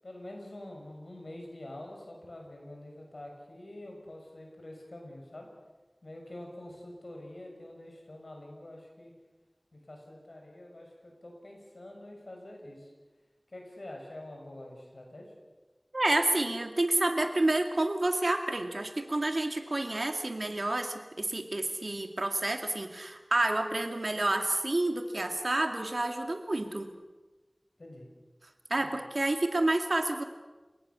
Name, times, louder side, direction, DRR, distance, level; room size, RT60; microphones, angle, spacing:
voice 1, 0.0-5.5 6.0-9.1 9.7-12.9 13.5-15.3 27.8-28.1 28.8-29.0, left 1 dB, 85° left, 1 dB, 6.7 m, -46 dB
voice 2, 15.9-26.9 28.7-30.2, right 2 dB, 70° right, 5 dB, 2.4 m, -29 dB
29.0 x 18.5 x 7.1 m, 1.2 s
wide cardioid pair, 45°, 0 cm